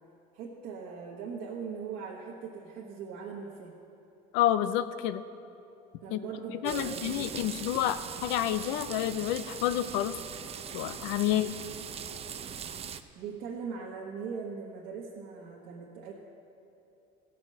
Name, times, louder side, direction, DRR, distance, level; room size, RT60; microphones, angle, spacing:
voice 1, 0.3-3.8 6.0-7.3 11.3-11.4 13.1-16.1, right 6 dB, 75° right, -4 dB, 1.4 m, -40 dB
voice 2, 4.3-5.2 6.1-6.2 6.6-10.1 10.7-11.6, left 12 dB, 85° left, 13 dB, 0.6 m, -29 dB
sound 1, 6.7-13.0, right 7 dB, 35° right, 0.5 m, -41 dB
15.0 x 6.0 x 7.5 m, 2.7 s
supercardioid pair, 105°, 19 cm